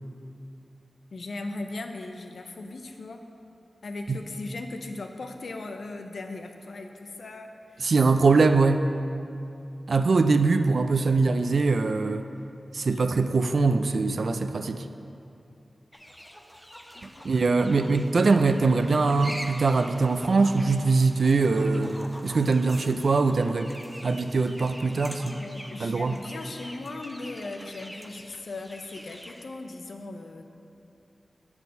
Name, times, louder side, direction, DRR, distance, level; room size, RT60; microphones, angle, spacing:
voice 1, 1.1-3.2 3.8-7.9 9.0-9.3 16.9-17.3 25.0-30.4, left 2 dB, 80° left, 5 dB, 0.6 m, -38 dB
voice 2, 7.8-8.9 9.9-12.2 12.7-14.9 17.2-21.9 22.2-23.7 24.0-25.4 25.8-26.2, right 3 dB, 70° right, 9 dB, 0.4 m, -22 dB
sound 1, 15.9-29.4, equal, 5° left, 0.5 m, -44 dB
8.2 x 4.4 x 6.7 m, 2.6 s
wide cardioid pair, 95°, 0 cm